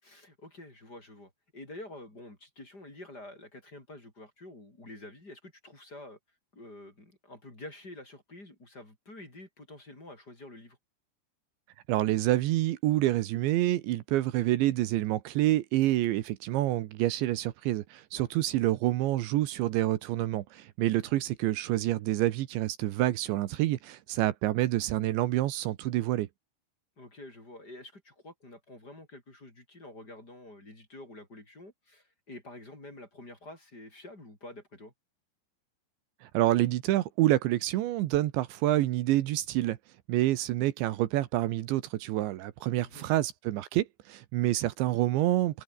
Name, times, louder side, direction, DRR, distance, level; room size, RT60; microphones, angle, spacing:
voice 1, 0.0-6.2 6.5-10.8 18.1-18.3 21.0-21.2 27.0-34.9 42.7-43.1 45.2-45.3, left 1 dB, 20° left, 6.4 m, -48 dB
voice 2, 11.9-26.3 36.2-39.8 40.1-45.6, right 15 dB, 80° right, 3.4 m, -27 dB
omnidirectional pair, 5.3 m